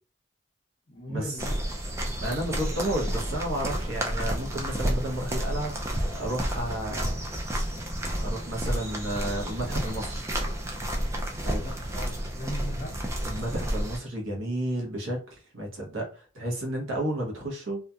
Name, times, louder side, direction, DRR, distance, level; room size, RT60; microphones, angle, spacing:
voice 1, 0.9-1.6 11.5-13.0, equal, 45° left, 0.7 m, -39 dB
sound 1, 1.4-14.0, right 1 dB, 15° right, 0.3 m, -31 dB
voice 2, 2.2-7.2 8.2-10.3 11.4-11.7 13.2-17.8, right 1 dB, 90° right, 0.9 m, -32 dB
2.8 x 2.3 x 2.3 m
head